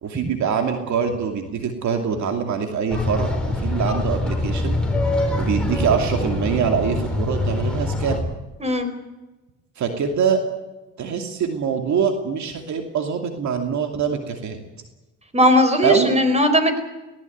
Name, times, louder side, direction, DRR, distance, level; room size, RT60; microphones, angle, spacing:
voice 1, 0.0-4.8 5.4-8.2 9.8-10.4 11.0-14.6 15.8-16.2, right 6 dB, 70° right, 5 dB, 2.7 m, -24 dB
sound 1, 2.9-8.2, left 1 dB, 5° left, 5.6 m, -24 dB
voice 2, 15.3-16.8, left 1 dB, 20° right, 9 dB, 4.8 m, -17 dB
19.5 x 18.5 x 9.4 m, 1.1 s
cardioid pair, 90°, 30 cm